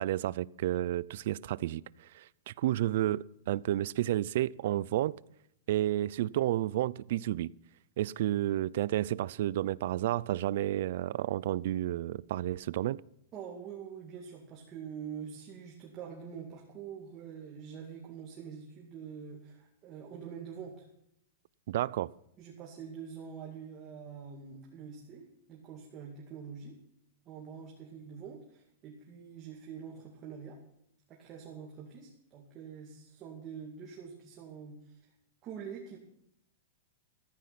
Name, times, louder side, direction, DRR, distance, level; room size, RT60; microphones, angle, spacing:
voice 1, 0.0-1.8 2.1-5.1 5.7-7.5 8.0-13.0 21.7-22.1, right 13 dB, 55° right, 0.4 m, -31 dB
voice 2, 13.3-20.7 22.4-26.7 27.3-30.6 31.1-35.0 35.4-36.0, right 7 dB, 25° right, 2.3 m, -45 dB
14.5 x 14.0 x 4.2 m
supercardioid pair, 165°, 0 cm